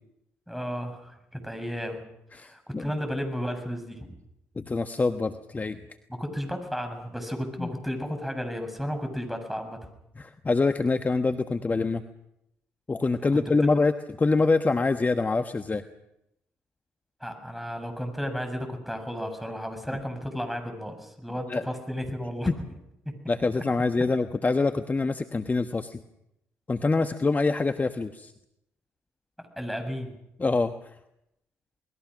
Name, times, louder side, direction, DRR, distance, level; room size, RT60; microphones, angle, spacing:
voice 1, 0.5-2.0 2.4-4.2 6.1-9.8 17.2-22.7 23.1-23.2 29.4-30.1, equal, ahead, 6 dB, 7.3 m, -33 dB
voice 2, 2.3-2.9 4.6-5.8 7.6-7.7 10.2-12.0 12.9-13.9 14.2-15.8 21.5-21.6 22.5-22.6 23.3-26.0 26.7-28.3 30.4-30.7, left 3 dB, 30° left, 8 dB, 1.3 m, -25 dB
28.0 x 20.5 x 6.4 m, 0.84 s
hypercardioid pair, 50°, 6 cm